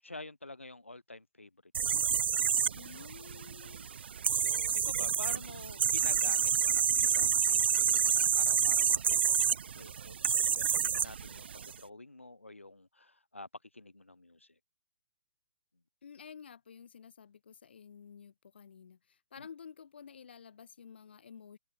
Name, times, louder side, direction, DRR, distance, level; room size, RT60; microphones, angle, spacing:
voice 1, 0.0-3.1 4.3-14.6 19.4-19.5, left 2 dB, 85° left, 0.7 m, -49 dB
sound 1, 1.7-11.7, right 7 dB, 55° right, 0.5 m, -29 dB
voice 2, 2.7-4.2 5.1-5.5 16.0-21.6, left 7 dB, 55° left, 2.3 m, -52 dB
figure-of-eight pair, 125°, 7 cm